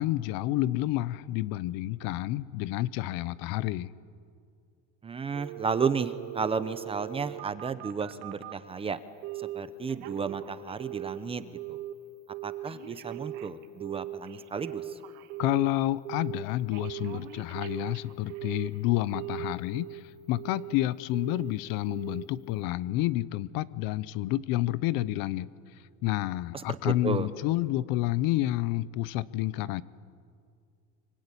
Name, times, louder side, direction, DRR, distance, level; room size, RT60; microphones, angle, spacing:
voice 1, 0.0-3.9 15.4-25.5 26.0-29.8, left 16 dB, 65° left, 18 dB, 0.8 m, -29 dB
voice 2, 5.0-9.0 9.4-11.8 12.4-15.0 26.5-27.3, right 5 dB, 15° right, 12 dB, 0.7 m, -33 dB
Telephone, 5.3-8.6 9.2-9.6 9.9-11.2 11.5-11.9 12.3-15.7 16.0-16.4 16.7-18.8 19.1-20.0 20.4-20.8 21.1-21.5 21.9-22.3 22.6-22.7, right 12 dB, 70° right, 1.7 m, -39 dB
25.0 x 23.5 x 9.9 m, 2.3 s
cardioid pair, 175°, 37 cm